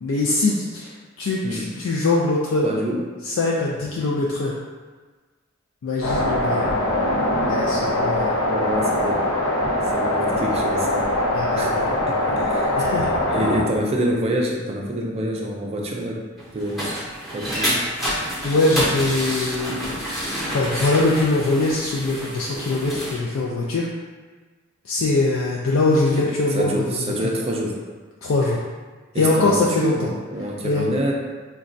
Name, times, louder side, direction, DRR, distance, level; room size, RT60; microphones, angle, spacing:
voice 1, 0.0-2.6 3.2-4.6 5.8-6.7 7.5-8.3 11.3-12.0 12.7-13.1 18.4-23.9 24.8-26.8 27.2-27.3 28.2-28.6 29.1-30.1 30.6-30.9, left 2 dB, 70° left, -3 dB, 0.4 m, -22 dB
voice 2, 1.4-1.8 2.6-3.0 6.6-6.9 8.5-9.2 9.8-11.0 11.5-11.7 12.0-16.2 16.5-16.9 17.3-17.9 26.2-27.8 29.1-31.1, right 1 dB, 30° right, -1 dB, 0.4 m, -27 dB
sound 1, 6.0-13.6, left 1 dB, 90° left, 0.7 m, -22 dB
sound 2, 16.4-23.2, equal, ahead, 0.7 m, -28 dB
4.0 x 2.2 x 2.5 m, 1.4 s
head